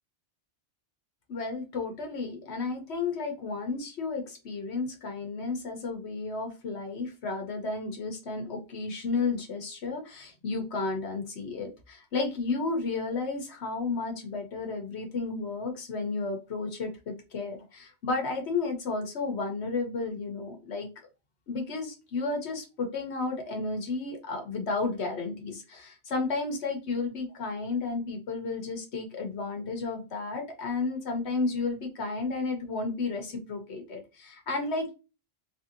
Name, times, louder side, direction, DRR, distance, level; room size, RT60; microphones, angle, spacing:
voice 1, 1.3-20.9 21.5-34.9, left 3 dB, 75° left, 3 dB, 1.2 m, -32 dB
4.1 x 2.7 x 2.5 m, 0.29 s
omnidirectional pair, 1.1 m